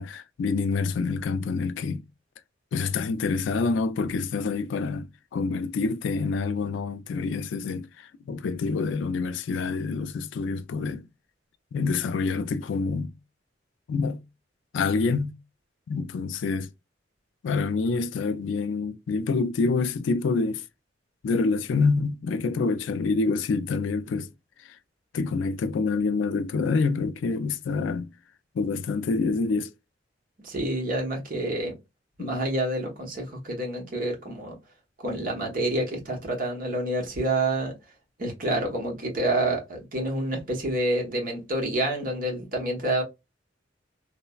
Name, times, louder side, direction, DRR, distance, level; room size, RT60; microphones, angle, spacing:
voice 1, 0.0-2.0 2.7-11.1 11.7-13.1 13.9-14.2 14.7-15.3 15.9-16.7 17.4-20.6 21.2-24.3 24.6-24.8 25.1-28.1 28.5-29.7 32.2-32.3, left 4 dB, 75° left, 0.3 m, -27 dB
voice 2, 30.4-31.7 32.2-34.6 35.0-37.7 38.2-43.0, right 1 dB, 50° right, 1.0 m, -28 dB
3.1 x 2.0 x 2.2 m
head